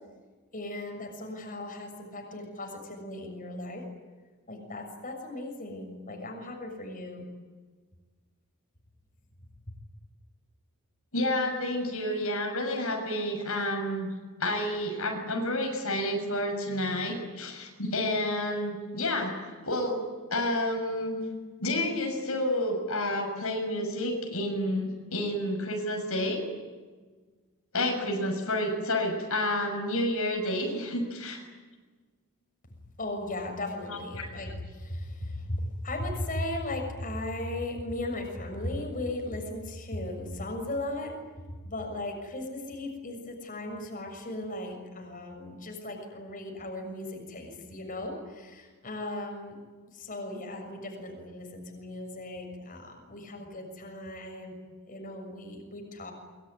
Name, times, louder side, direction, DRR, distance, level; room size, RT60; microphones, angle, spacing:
voice 1, 0.5-3.8 4.5-7.2 9.7-9.8 33.0-41.1 41.6-49.6 49.9-54.6 54.9-56.1, left 1 dB, 40° left, 3 dB, 6.8 m, -37 dB
voice 2, 11.1-14.1 14.4-19.3 19.6-20.0 20.3-21.2 21.6-26.4 27.7-31.4 33.9-34.2, left 1 dB, 75° left, 2 dB, 6.6 m, -30 dB
24.5 x 24.0 x 9.9 m, 1.4 s
head